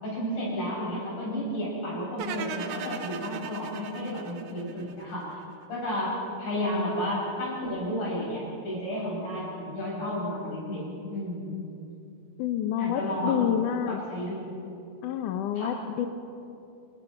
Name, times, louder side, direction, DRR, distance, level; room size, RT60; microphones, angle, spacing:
voice 1, 0.0-5.4 5.7-10.8 11.1-11.6 12.8-13.4 13.9-14.5 15.6-15.8, equal, 55° left, -5 dB, 9.3 m, -32 dB
sound 1, 2.2-5.3, right 6 dB, 90° right, 1.3 m, -38 dB
voice 2, 12.4-14.0 15.0-16.1, left 9 dB, 75° left, 8 dB, 2.0 m, -28 dB
29.0 x 18.5 x 5.8 m, 2.7 s
omnidirectional pair, 4.3 m